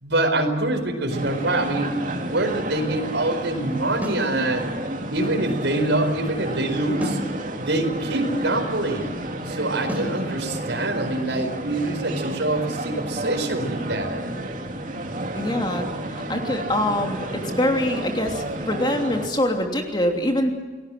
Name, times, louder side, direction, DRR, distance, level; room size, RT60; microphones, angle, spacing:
voice 1, 0.0-4.6 5.1-7.2 7.6-9.1 9.5-14.2, right 2 dB, 75° right, 3 dB, 4.7 m, -25 dB
sound 1, 1.1-19.3, right 1 dB, 45° right, 2.8 m, -31 dB
sound 2, 4.0-4.3 7.0-7.3 9.9-10.2, equal, 10° right, 4.3 m, -29 dB
voice 2, 15.3-20.5, left 1 dB, 25° left, 3 dB, 3.0 m, -24 dB
29.5 x 19.0 x 7.8 m, 1.4 s
head